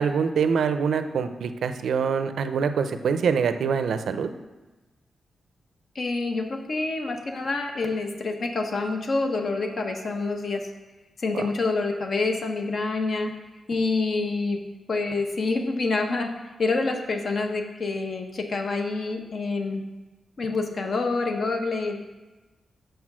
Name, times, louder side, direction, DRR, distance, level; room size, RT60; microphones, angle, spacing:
voice 1, 0.0-4.3 11.3-11.4, right 6 dB, 80° right, 9 dB, 0.5 m, -24 dB
voice 2, 5.9-10.7 11.2-13.3 13.7-14.6 14.9-16.3 16.6-19.8 20.4-22.0, left 3 dB, 45° left, 4 dB, 1.0 m, -27 dB
6.7 x 6.2 x 6.1 m, 1.2 s
wide cardioid pair, 150°, 0 cm